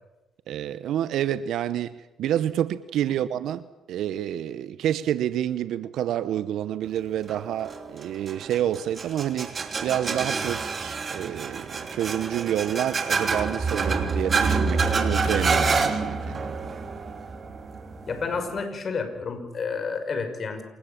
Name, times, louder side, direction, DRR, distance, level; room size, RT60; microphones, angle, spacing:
voice 1, 0.5-16.6, right 11 dB, 70° right, 0.8 m, -28 dB
sound 1, 7.3-18.6, right 4 dB, 45° right, 3.4 m, -27 dB
voice 2, 18.0-20.6, left 5 dB, 50° left, 5.8 m, -30 dB
28.0 x 20.0 x 7.3 m
hypercardioid pair, 55°, 0 cm